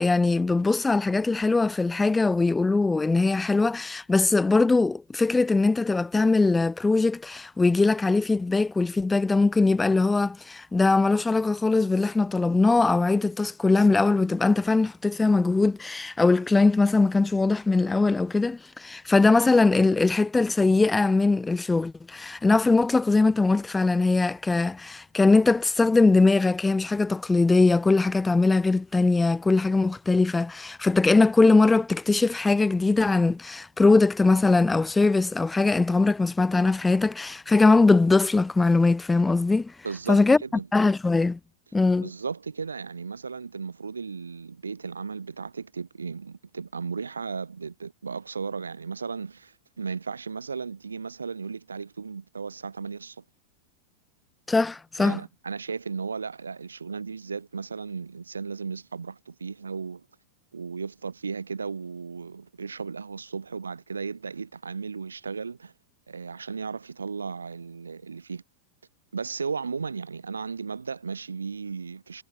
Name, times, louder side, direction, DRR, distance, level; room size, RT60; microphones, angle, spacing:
voice 1, 0.0-39.7 40.1-40.4 40.7-41.4 41.7-42.1 54.5-55.2, left 3 dB, 10° left, 0.4 m, -21 dB
voice 2, 39.8-40.7 42.0-53.2 55.0-60.1 60.5-65.7 66.1-68.4 69.1-72.2, right 5 dB, 75° right, 7.7 m, -35 dB
figure-of-eight pair, 90°, 0 cm